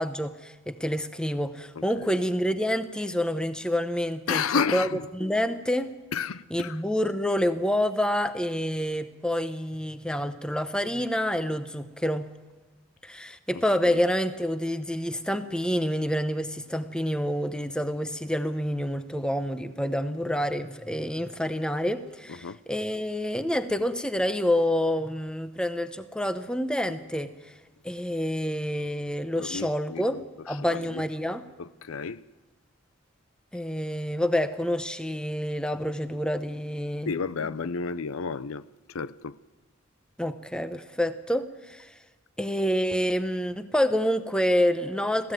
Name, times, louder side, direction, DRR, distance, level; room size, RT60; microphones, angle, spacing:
voice 1, 0.0-4.4 4.7-4.9 5.1-5.9 6.5-12.3 13.0-27.3 27.8-31.4 33.5-37.1 40.2-41.9 42.4-45.3, equal, 5° left, 0.8 m, -28 dB
voice 2, 4.3-5.1 6.1-6.8 13.5-14.0 22.3-22.6 29.4-31.0 31.6-32.2 37.1-38.6 38.9-39.4, left 6 dB, 80° left, 0.6 m, -32 dB
22.0 x 15.5 x 9.1 m
head